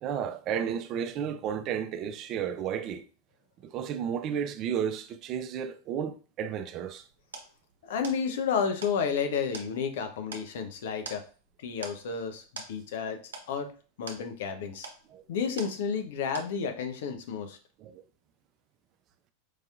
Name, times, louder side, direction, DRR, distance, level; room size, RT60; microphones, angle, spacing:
voice 1, 0.0-3.0 3.6-7.1 15.1-15.2 17.8-18.0, right 8 dB, 40° right, 0.4 m, -33 dB
sound 1, 6.9-16.1 16.3-16.9, right 4 dB, 75° right, 0.7 m, -46 dB
voice 2, 7.8-11.2 11.6-13.7 14.0-14.9 15.3-17.6, left 6 dB, 65° left, 0.6 m, -31 dB
4.7 x 2.8 x 2.3 m
figure-of-eight pair, 90°, 0 cm